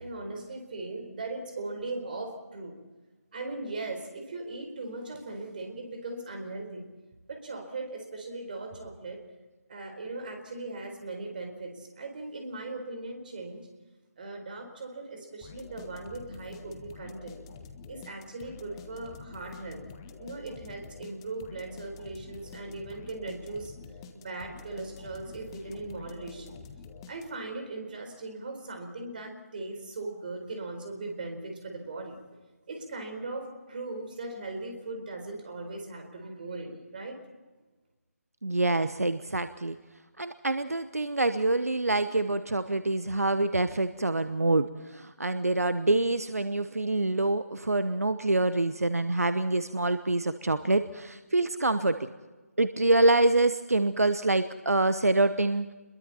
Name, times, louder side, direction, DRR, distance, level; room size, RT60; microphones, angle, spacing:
voice 1, 0.0-2.8 3.3-6.9 7.3-9.2 9.7-13.7 14.2-17.4 17.9-19.8 20.2-23.7 24.1-26.6 27.1-32.2 32.7-37.2, right 2 dB, 35° right, 4 dB, 4.4 m, -39 dB
sound 1, 15.4-27.6, left 5 dB, 20° left, 1.4 m, -47 dB
voice 2, 38.4-39.8 40.2-52.1 52.6-55.7, right 2 dB, 70° right, 12 dB, 1.0 m, -26 dB
27.5 x 22.0 x 4.3 m, 1.2 s
figure-of-eight pair, 155°, 8 cm